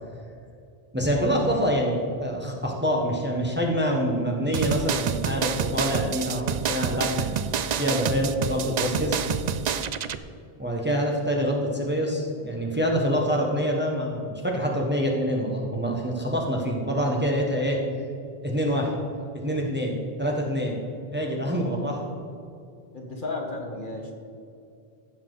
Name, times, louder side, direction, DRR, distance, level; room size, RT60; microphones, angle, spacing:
voice 1, 0.9-9.2 10.6-17.8 18.4-19.0 19.3-20.8 21.1-22.1, equal, 10° right, 0 dB, 1.3 m, -26 dB
sound 1, 4.5-10.2, right 7 dB, 55° right, 0.5 m, -28 dB
voice 2, 22.9-24.2, left 2 dB, 55° left, 0 dB, 1.6 m, -33 dB
15.0 x 7.3 x 4.0 m, 2.5 s
omnidirectional pair, 1.0 m